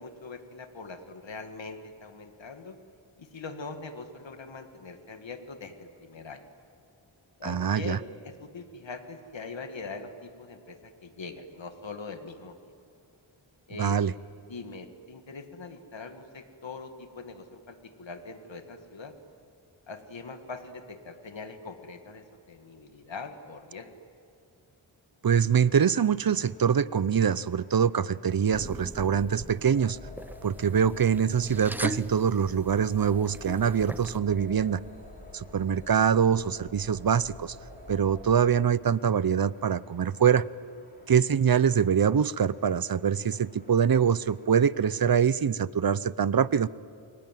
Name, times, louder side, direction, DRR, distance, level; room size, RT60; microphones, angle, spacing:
voice 1, 0.0-2.8 3.2-6.5 7.4-12.7 13.7-14.0 14.5-19.1 19.9-23.9, left 4 dB, 65° left, 7 dB, 2.0 m, -42 dB
voice 2, 7.4-8.0 13.8-14.1 25.2-30.0 30.4-34.8 35.3-37.6 37.9-40.5 41.1-46.7, right 7 dB, 45° right, 19 dB, 0.7 m, -24 dB
sound 1, 25.6-45.2, left 1 dB, 20° left, 6.1 m, -59 dB
sound 2, 28.5-34.2, equal, 5° right, 0.6 m, -40 dB
sound 3, 29.2-38.4, left 2 dB, 80° left, 5.1 m, -47 dB
28.5 x 22.5 x 9.2 m, 2.6 s
wide cardioid pair, 95°, 49 cm